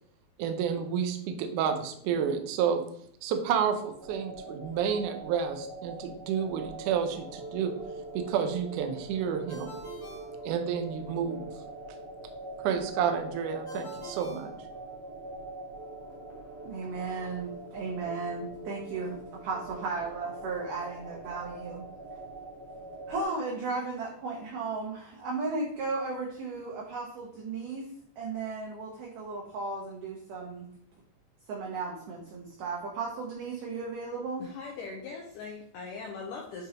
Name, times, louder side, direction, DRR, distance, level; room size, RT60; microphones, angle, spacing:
voice 1, 0.4-2.8 3.2-7.7 8.1-9.7 10.4-11.5 12.6-14.5, right 7 dB, 90° right, 6 dB, 1.7 m, -30 dB
sound 1, 4.0-23.2, right 2 dB, 30° right, 1.2 m, -43 dB
Ringtone, 9.5-11.2 13.7-15.3, left 1 dB, 40° left, 1.3 m, -49 dB
voice 2, 16.6-21.8 23.1-27.9 28.2-30.7 31.5-34.5, right 3 dB, 70° right, -1 dB, 2.1 m, -35 dB
voice 3, 34.4-36.7, left 4 dB, 80° left, 0 dB, 1.9 m, -40 dB
8.6 x 3.8 x 2.9 m, 0.66 s
omnidirectional pair, 4.5 m